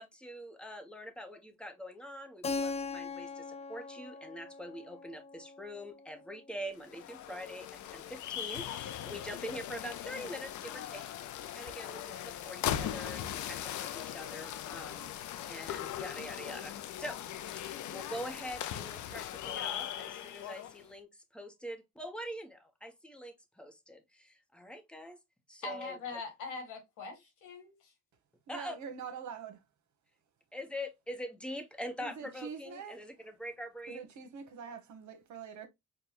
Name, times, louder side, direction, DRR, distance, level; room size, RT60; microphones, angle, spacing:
voice 1, 0.0-11.1 11.5-15.1 15.5-17.2 17.6-25.2 25.5-26.0 28.5-28.8 30.5-34.1, equal, 5° left, 0.9 m, -44 dB
Keyboard (musical), 2.4-7.0, left 4 dB, 20° left, 0.4 m, -41 dB
sound 1, 6.7-20.8, left 11 dB, 75° left, 0.5 m, -39 dB
voice 2, 25.6-27.9, left 3 dB, 90° left, 1.5 m, -42 dB
voice 3, 28.5-29.6 32.0-33.3 33.9-35.7, right 6 dB, 70° right, 1.0 m, -45 dB
4.6 x 2.2 x 2.9 m
cardioid pair, 90°, 30 cm